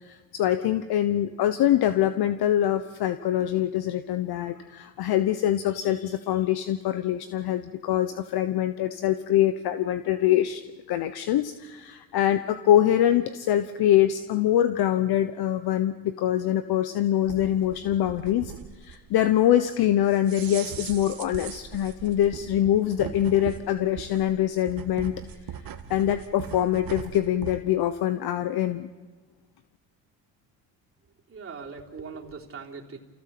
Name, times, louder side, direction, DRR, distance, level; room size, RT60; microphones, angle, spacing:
voice 1, 0.0-10.6 10.9-18.5 18.8-25.1 25.9-28.9, left 11 dB, 65° left, 10 dB, 1.1 m, -24 dB
sound 1, 17.2-27.6, right 9 dB, 55° right, 1.7 m, -40 dB
voice 2, 31.3-33.0, right 5 dB, 35° right, -1 dB, 3.5 m, -40 dB
29.0 x 16.0 x 7.7 m, 1.3 s
supercardioid pair, 75°, 41 cm